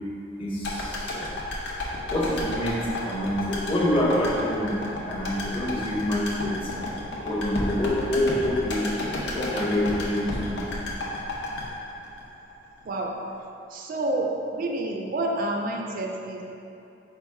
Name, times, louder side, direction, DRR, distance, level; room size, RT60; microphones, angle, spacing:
voice 1, 0.4-1.2 2.1-4.8 5.0-6.7 7.2-8.8 9.3-10.7, left 1 dB, 30° left, -5 dB, 0.8 m, -26 dB
sound 1, 0.6-12.8 13.1-13.2, left 1 dB, 65° left, 0.7 m, -32 dB
voice 2, 12.8-13.2 13.7-16.4, right 2 dB, 50° right, 1 dB, 0.4 m, -29 dB
4.7 x 2.4 x 4.5 m, 2.7 s
head